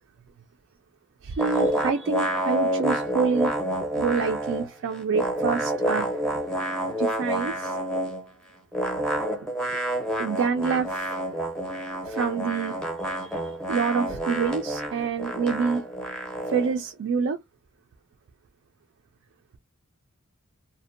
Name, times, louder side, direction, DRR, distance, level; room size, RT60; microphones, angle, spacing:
voice 1, 1.2-3.5 4.0-6.4 7.0-7.8 10.2-11.1 12.0-15.8 16.5-17.4, right 5 dB, 55° right, 0.3 m, -27 dB
sound 1, 1.4-4.7 4.9-8.2 8.7-16.8, right 1 dB, 5° left, 0.6 m, -28 dB
2.5 x 2.1 x 2.4 m
head